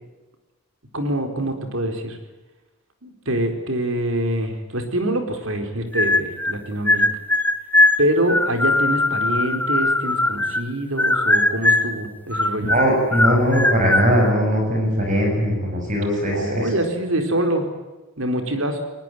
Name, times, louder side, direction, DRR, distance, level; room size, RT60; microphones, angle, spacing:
voice 1, 0.9-2.2 3.0-7.1 8.0-12.7 16.3-17.7 18.2-18.8, right 1 dB, 70° right, 6 dB, 4.3 m, -25 dB
sound 1, 5.9-6.6 6.9-10.7 11.0-12.0 12.3-14.1, left 2 dB, 10° left, 1.0 m, -19 dB
voice 2, 12.7-16.7, equal, 35° right, 1 dB, 7.2 m, -20 dB
22.5 x 21.0 x 9.3 m, 1.1 s
head